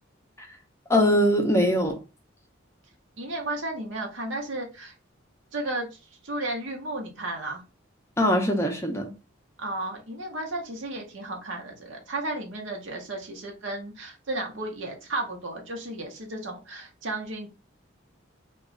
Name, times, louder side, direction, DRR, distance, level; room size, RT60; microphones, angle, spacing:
voice 1, 0.9-2.0 8.2-9.1, equal, 15° left, 0.5 m, -22 dB
voice 2, 3.2-4.9 5.5-7.6 9.6-17.5, right 2 dB, 70° right, 0.7 m, -33 dB
3.0 x 2.2 x 3.7 m
head